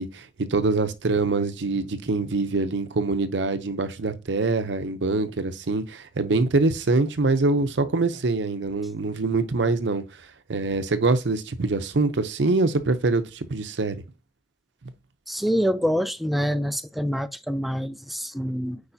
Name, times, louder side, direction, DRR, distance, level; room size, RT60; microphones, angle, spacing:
voice 1, 0.0-10.0 10.5-14.0, right 3 dB, 80° right, 0.7 m, -24 dB
voice 2, 15.3-18.8, equal, ahead, 0.3 m, -26 dB
8.7 x 4.8 x 2.7 m
head